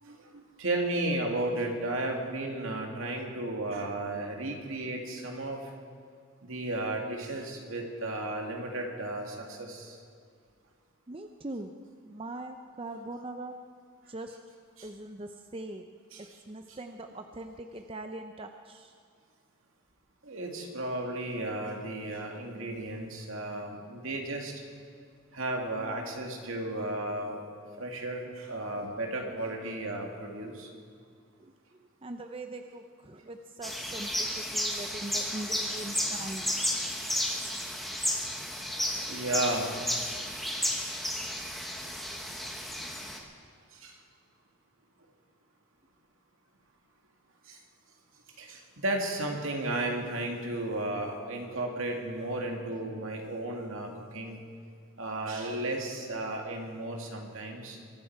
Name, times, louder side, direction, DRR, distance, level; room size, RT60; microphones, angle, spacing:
voice 1, 0.0-5.6 6.4-10.0 14.8-14.9 16.1-16.4 20.2-24.5 25.3-27.4 27.8-30.7 35.3-35.4 35.7-35.8 38.9-39.7 41.8-41.9 43.7-43.9 47.5-47.6 48.4-54.4 55.0-57.8, right 2 dB, 70° right, 1 dB, 2.3 m, -34 dB
voice 2, 11.1-11.7 12.0-13.5 14.1-14.4 14.8-15.9 16.2-18.9 31.4-31.5 32.0-36.5, right 2 dB, 25° right, 6 dB, 0.5 m, -41 dB
sound 1, 33.6-43.2, equal, ahead, 1.3 m, -33 dB
23.0 x 11.5 x 4.8 m, 2.2 s
head